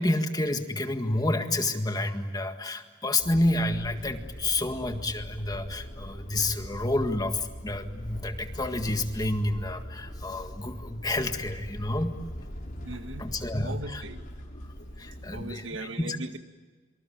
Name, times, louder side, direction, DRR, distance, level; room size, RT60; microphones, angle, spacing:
voice 1, 0.0-12.2 13.2-14.0 15.0-15.6 16.0-16.2, left 2 dB, 20° left, 6 dB, 1.8 m, -29 dB
sound 1, 3.2-15.5, equal, 45° left, 5.3 m, -41 dB
voice 2, 12.8-13.3 13.6-14.2 15.3-16.4, right 2 dB, 75° right, 7 dB, 1.9 m, -38 dB
26.0 x 25.0 x 8.8 m, 1.4 s
head